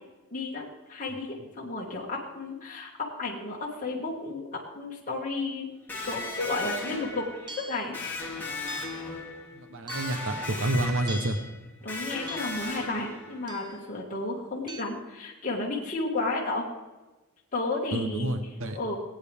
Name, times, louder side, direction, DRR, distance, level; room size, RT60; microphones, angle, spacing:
voice 1, 0.3-2.9 3.2-4.5 4.7-5.7 6.0-7.3 7.6-7.9 11.8-16.7 17.5-18.3 18.7-19.0, left 2 dB, 35° left, -4 dB, 1.9 m, -32 dB
Electric guitar, 5.9-13.6, left 2 dB, 10° left, 3.3 m, -37 dB
sound 1, 7.5-7.9 8.7-9.1 9.9-10.3 11.1-11.5 12.3-12.7 13.5-13.9 14.7-14.8, right 1 dB, 20° right, 0.7 m, -41 dB
voice 2, 9.5-11.4 17.9-18.8, right 1 dB, 65° right, 7 dB, 1.0 m, -29 dB
19.5 x 9.0 x 3.6 m, 1.2 s
head